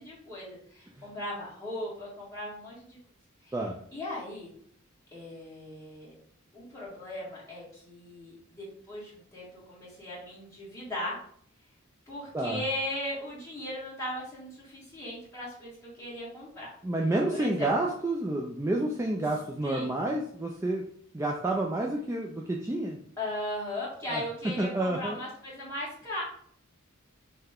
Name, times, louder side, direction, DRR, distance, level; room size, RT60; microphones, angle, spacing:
voice 1, 0.0-3.0 3.4-3.5 3.9-4.5 5.1-6.1 6.5-11.2 12.1-16.7 17.3-17.7 19.6-19.9 23.2-26.2, left 1 dB, 15° left, -8 dB, 1.6 m, -38 dB
voice 2, 16.8-20.8 21.1-23.0 24.1-24.2 24.6-25.2, right 2 dB, 15° right, -1 dB, 0.3 m, -29 dB
5.6 x 2.2 x 3.4 m, 0.62 s
head